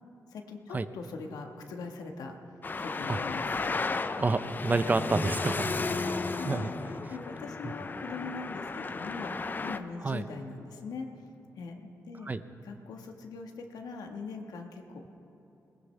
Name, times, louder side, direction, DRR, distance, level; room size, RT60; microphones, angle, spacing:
voice 1, 0.3-2.3 2.8-3.7 5.8-6.7 7.1-11.1 11.6-11.8 12.1-12.3 12.6-15.1, left 4 dB, 85° left, 3 dB, 1.5 m, -41 dB
Traffic noise roadway noise, 2.6-9.8, left 3 dB, 30° left, 0.6 m, -34 dB
voice 2, 4.2-5.7 6.4-6.7 7.6-7.7 10.0-10.3 12.2-12.4, right 3 dB, 25° right, 11 dB, 0.6 m, -29 dB
20.0 x 20.0 x 3.4 m, 2.9 s
cardioid pair, 90°, 6 cm